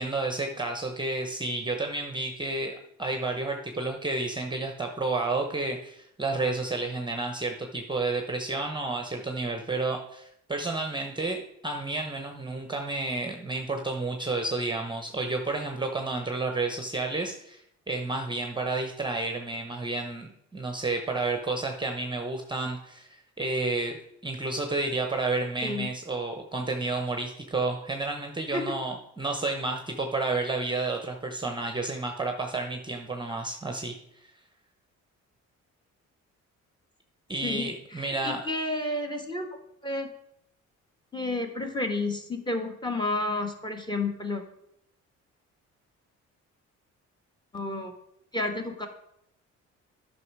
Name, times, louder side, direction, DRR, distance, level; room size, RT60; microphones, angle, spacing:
voice 1, 0.0-34.0 37.3-38.4, right 3 dB, 15° right, 4 dB, 0.9 m, -31 dB
voice 2, 37.4-39.6 39.8-40.1 41.1-44.4 47.5-47.9 48.3-48.9, left 2 dB, 15° left, 5 dB, 1.5 m, -31 dB
9.6 x 5.9 x 4.7 m, 0.76 s
cardioid pair, 90°, 30 cm